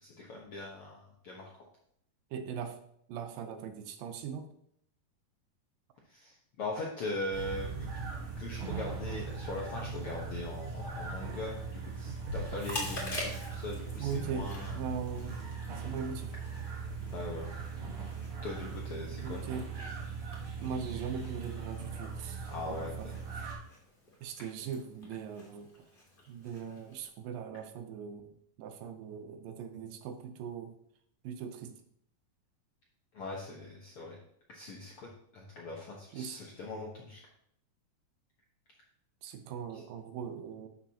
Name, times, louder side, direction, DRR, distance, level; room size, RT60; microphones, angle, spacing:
voice 1, 0.0-1.5 6.1-7.9 8.4-14.8 17.1-17.5 18.4-19.5 22.5-23.2 33.1-34.2 34.5-37.2 39.7-39.8, left 2 dB, 70° left, -2 dB, 1.3 m, -41 dB
voice 2, 2.3-2.8 3.1-4.5 14.0-15.4 15.8-16.3 19.2-19.7 20.6-23.1 23.4-23.5 24.2-25.7 26.3-30.8 31.2-31.7 36.1-36.4 39.2-40.7, right 7 dB, 80° right, 7 dB, 2.5 m, -40 dB
sound 1, 7.3-23.6, right 4 dB, 50° right, 1.9 m, -39 dB
Chewing mastication, 12.4-27.1, left 1 dB, 20° left, 1.8 m, -47 dB
11.5 x 6.3 x 2.9 m, 0.71 s
omnidirectional pair, 4.0 m